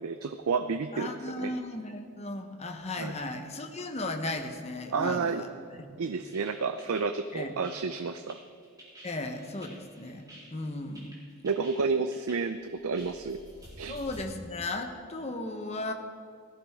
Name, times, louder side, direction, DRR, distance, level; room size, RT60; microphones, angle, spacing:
voice 1, 0.0-1.1 1.4-1.5 3.0-3.1 4.9-5.4 6.0-8.4 11.4-13.4 13.8-14.0, right 4 dB, 80° right, 9 dB, 0.5 m, -30 dB
voice 2, 0.9-6.2 7.3-7.5 9.0-10.2 10.5-11.2 13.9-15.9, left 2 dB, 30° left, 5 dB, 1.0 m, -36 dB
sound 1, 6.3-14.2, right 1 dB, 15° right, 3.4 m, -51 dB
17.0 x 14.5 x 3.6 m, 2.2 s
head